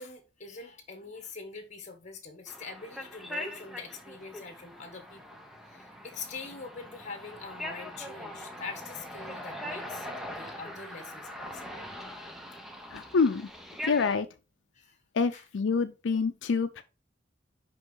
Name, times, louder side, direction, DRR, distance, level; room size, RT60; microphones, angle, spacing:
voice 1, 0.0-5.4 5.7-11.9 14.7-14.9 15.3-15.4, left 4 dB, 40° left, 1.6 m, -44 dB
sound 1, 2.5-14.2, left 1 dB, ahead, 0.9 m, -42 dB
voice 2, 12.9-13.5 13.8-14.3 15.1-16.8, left 5 dB, 90° left, 0.5 m, -27 dB
5.4 x 5.4 x 3.8 m
head